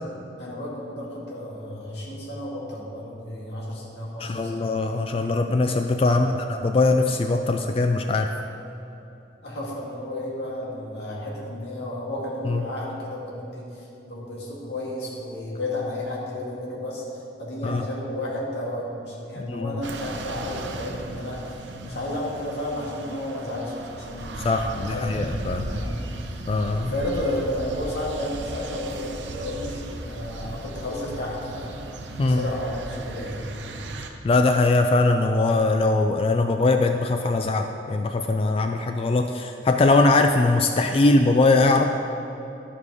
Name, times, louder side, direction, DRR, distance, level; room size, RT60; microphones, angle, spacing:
voice 1, 0.4-4.7 6.1-6.5 9.4-26.4 26.9-31.8 32.2-33.5, left 1 dB, 70° left, -5 dB, 2.1 m, -32 dB
voice 2, 4.2-8.3 12.5-12.6 17.6-17.8 19.5-19.8 24.4-25.7 26.5-26.9 32.2-32.4 34.2-41.8, left 2 dB, 30° left, 5 dB, 0.3 m, -21 dB
sound 1, 19.8-34.1, right 2 dB, 90° right, 0.7 m, -36 dB
12.0 x 5.3 x 4.8 m, 3.0 s
head